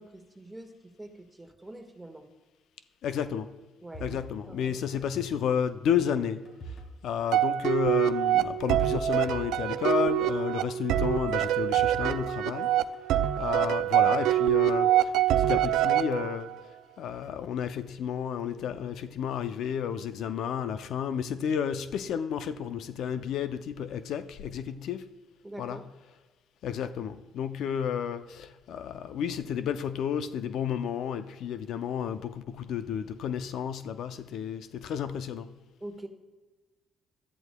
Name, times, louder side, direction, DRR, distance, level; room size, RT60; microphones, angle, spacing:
voice 1, 0.0-2.3 3.8-4.2 4.5-4.8 25.4-25.8 35.8-36.1, right 1 dB, 10° right, 1.4 m, -44 dB
voice 2, 3.0-3.6 4.0-6.7 7.0-12.7 13.4-16.5 17.0-25.0 25.6-25.8 26.6-35.6, left 8 dB, 75° left, 0.4 m, -32 dB
sound 1, 3.9-5.5 5.8-7.4 7.6-7.8 8.4-9.6 9.8-9.9 11.1-13.2 13.8-14.6, right 2 dB, 55° left, 2.3 m, -45 dB
sound 2, 7.3-16.6, right 12 dB, 90° right, 0.4 m, -25 dB
13.0 x 11.0 x 2.2 m
cardioid pair, 90°, 0 cm